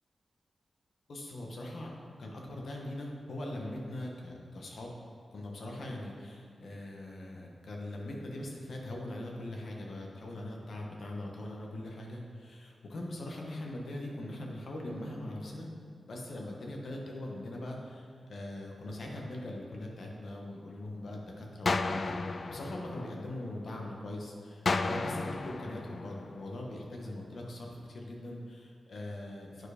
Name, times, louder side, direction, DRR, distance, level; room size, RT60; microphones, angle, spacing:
voice 1, 1.1-1.9 2.2-4.9 5.3-15.7 16.1-29.7, left 1 dB, 70° left, 0 dB, 1.3 m, -41 dB
sound 1, 21.7-23.7 24.7-26.7, left 3 dB, 50° left, 0.3 m, -34 dB
9.5 x 4.6 x 5.1 m, 2.3 s
wide cardioid pair, 100°, 0 cm